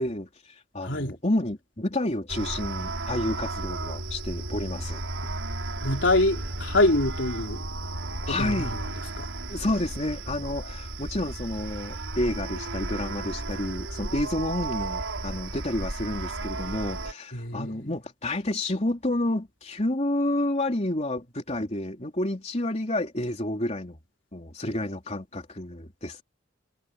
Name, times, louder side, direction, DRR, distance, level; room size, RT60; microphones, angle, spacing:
voice 1, 0.0-5.0 8.3-8.8 9.5-24.0 24.3-26.2, left 1 dB, 35° left, 3.5 m, -30 dB
voice 2, 0.8-1.2 5.8-7.6 8.3-9.3 17.3-18.0 24.6-24.7, left 2 dB, 65° left, 4.4 m, -26 dB
sound 1, 2.3-17.1, right 2 dB, 80° right, 4.7 m, -34 dB
head